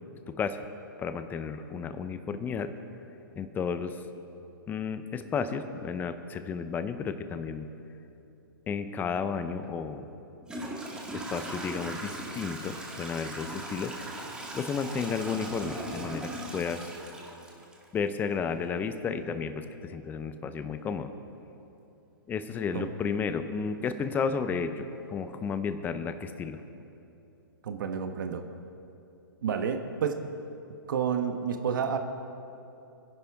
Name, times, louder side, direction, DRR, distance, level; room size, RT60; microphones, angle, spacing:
voice 1, 0.3-0.6 1.0-2.7 3.4-4.0 4.7-7.7 8.7-10.1 11.1-13.9 14.5-16.9 17.9-21.1 22.3-26.6, left 6 dB, 15° left, 10 dB, 0.7 m, -32 dB
Toilet flush / Trickle dribble, 9.6-9.7 10.4-18.2, right 1 dB, 5° right, 1.5 m, -39 dB
voice 2, 27.6-28.4 29.4-30.2 30.9-32.0, right 7 dB, 60° right, 7 dB, 1.1 m, -30 dB
23.5 x 11.0 x 3.6 m, 2.8 s
hypercardioid pair, 130°, 12 cm